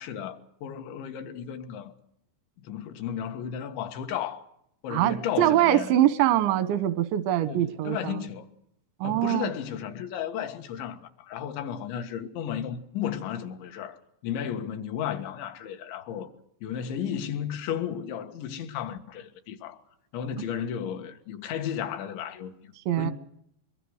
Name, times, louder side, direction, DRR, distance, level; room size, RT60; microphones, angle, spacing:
voice 1, 0.0-1.9 2.6-4.4 4.8-5.9 7.4-8.5 9.0-16.3 16.6-19.8 20.1-23.1, left 9 dB, 85° left, 3.9 m, -34 dB
voice 2, 4.9-8.2 9.0-9.5 20.4-20.5 22.9-23.1, right 13 dB, 90° right, 3.5 m, -23 dB
23.0 x 23.0 x 6.4 m
omnidirectional pair, 5.1 m